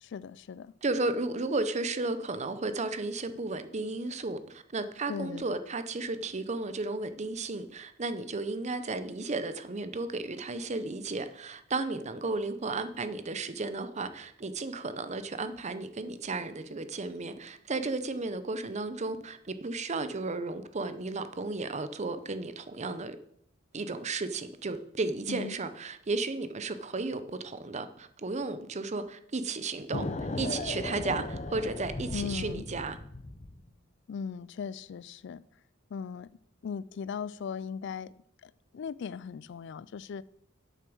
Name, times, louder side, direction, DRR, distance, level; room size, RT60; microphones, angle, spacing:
voice 1, 0.0-0.7 5.1-5.4 25.3-25.6 32.1-32.6 34.1-35.4 35.9-36.3 36.6-38.1 38.4-40.2, left 6 dB, 60° left, 0.3 m, -38 dB
voice 2, 0.8-23.2 23.7-33.0, right 3 dB, 35° right, 0.7 m, -34 dB
sound 1, 29.9-33.6, left 2 dB, 35° left, 0.8 m, -36 dB
8.3 x 7.1 x 6.1 m
head